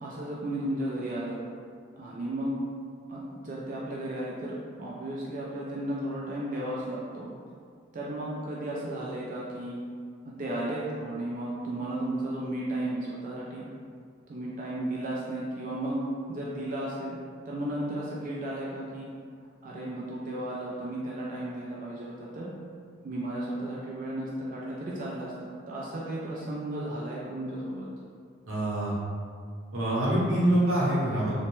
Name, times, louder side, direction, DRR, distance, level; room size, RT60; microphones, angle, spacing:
voice 1, 0.0-1.4 2.0-2.5 3.1-7.3 7.9-9.8 10.2-13.7 14.3-16.0 16.3-17.2 17.5-19.1 19.6-22.5 23.0-27.9, right 1 dB, 40° right, -5 dB, 0.3 m, -34 dB
voice 2, 28.5-28.9 29.7-31.3, right 1 dB, 80° right, -7 dB, 0.8 m, -25 dB
2.9 x 2.1 x 3.0 m, 2.1 s
head